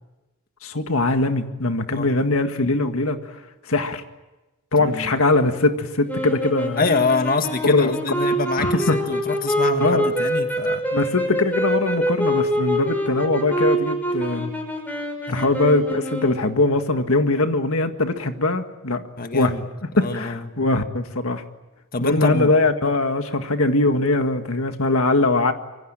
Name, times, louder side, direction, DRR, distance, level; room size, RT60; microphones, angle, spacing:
voice 1, 0.6-3.4 3.7-4.0 4.7-6.8 7.6-7.9 8.6-9.0 9.8-10.1 10.9-14.5 15.3-19.0 19.3-19.5 20.0-21.4 22.0-25.5, left 2 dB, 65° left, 7 dB, 1.9 m, -21 dB
voice 2, 4.8-5.2 6.8-10.8 15.3-15.5 19.2-19.6 20.0-20.5 21.9-22.5, left 3 dB, 40° left, 7 dB, 1.7 m, -25 dB
sound 1, 6.1-16.6, equal, 10° left, 5.6 m, -25 dB
26.0 x 24.0 x 9.0 m, 1.1 s
head